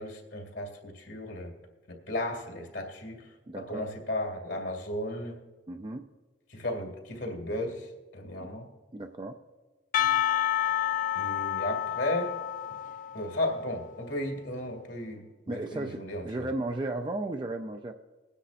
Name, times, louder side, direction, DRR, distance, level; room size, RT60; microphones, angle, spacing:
voice 1, 0.0-1.5 1.9-3.3 3.6-5.4 6.5-8.7 11.1-12.4 13.1-16.5, left 1 dB, 70° left, 1 dB, 2.3 m, -35 dB
voice 2, 3.5-3.9 5.7-6.1 8.4-8.5 8.9-9.4 15.5-17.9, right 2 dB, 25° right, 4 dB, 0.4 m, -35 dB
Percussion, 9.9-13.8, left 11 dB, 45° left, 0.4 m, -29 dB
21.0 x 9.9 x 2.5 m, 1.3 s
head